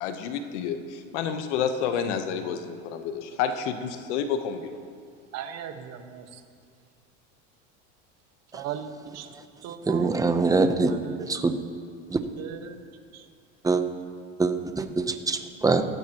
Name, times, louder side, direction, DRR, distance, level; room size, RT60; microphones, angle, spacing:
voice 1, 0.0-0.8 1.1-4.8, left 7 dB, 80° left, 8 dB, 1.1 m, -29 dB
voice 2, 5.3-6.4 8.5-9.3 9.6-10.1 10.9-11.4 12.4-12.8 13.1-13.3, right 9 dB, 45° right, 6 dB, 1.4 m, -38 dB
voice 3, 9.9-10.9 11.3-11.5 12.1-12.2 13.6-13.8 14.4-15.8, right 3 dB, 10° right, 8 dB, 0.7 m, -23 dB
19.0 x 15.0 x 3.0 m, 2.2 s
supercardioid pair, 130°, 35 cm